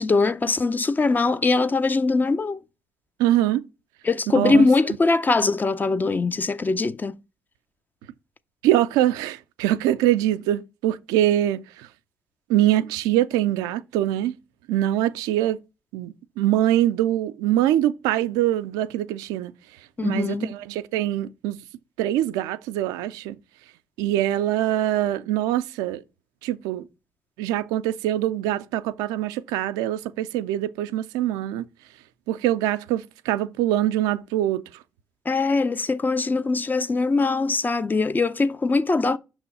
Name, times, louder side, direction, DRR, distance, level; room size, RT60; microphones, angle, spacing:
voice 1, 0.0-2.6 4.0-7.2 20.0-20.5 35.3-39.2, left 3 dB, 30° left, 0.6 m, -22 dB
voice 2, 3.2-3.6 4.3-4.7 8.6-11.9 12.5-14.3 14.7-15.6 15.9-19.5 20.0-21.6 22.0-23.4 24.0-26.0 26.4-26.9 27.4-31.6 32.3-34.6, right 13 dB, 90° right, 0.4 m, -23 dB
6.2 x 3.0 x 5.3 m
supercardioid pair, 60°, 6 cm